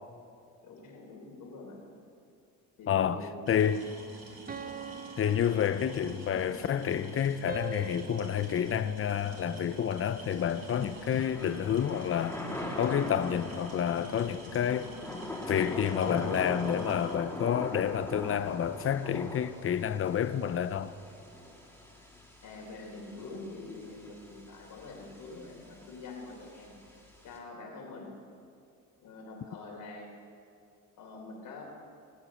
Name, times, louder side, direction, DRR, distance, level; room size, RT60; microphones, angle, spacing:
voice 1, 0.6-2.0 2.8-3.8 22.4-26.8 27.2-28.2 29.0-30.2 31.0-31.6, left 3 dB, 70° left, 3.8 m, -45 dB
voice 2, 2.9-3.9 5.2-12.4 12.8-14.9 15.5-20.9, left 9 dB, 40° left, 0.6 m, -29 dB
sound 1, 3.5-17.2, right 2 dB, 45° right, 3.1 m, -48 dB
sound 2, 4.5-6.4 7.5-9.9, right 5 dB, 25° right, 0.7 m, -44 dB
Thunder / Rain, 9.2-27.4, left 1 dB, 5° left, 2.9 m, -42 dB
19.0 x 8.2 x 6.4 m
cardioid pair, 105°, 34 cm